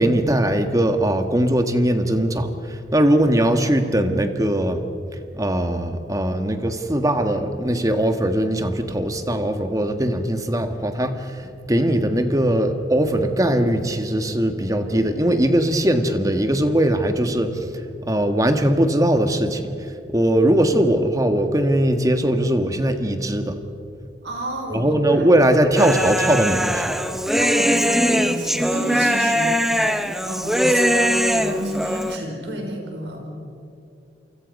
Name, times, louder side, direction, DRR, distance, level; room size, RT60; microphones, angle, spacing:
voice 1, 0.0-4.9 5.3-17.5 18.0-19.7 20.1-23.6 24.7-26.8, right 1 dB, 20° right, 7 dB, 1.5 m, -20 dB
voice 2, 24.2-25.2 27.4-29.6 30.2-33.3, right 1 dB, 80° right, 2 dB, 5.5 m, -31 dB
Human voice, 25.8-32.2, equal, ahead, 0.9 m, -21 dB
29.0 x 24.5 x 5.4 m, 2.6 s
head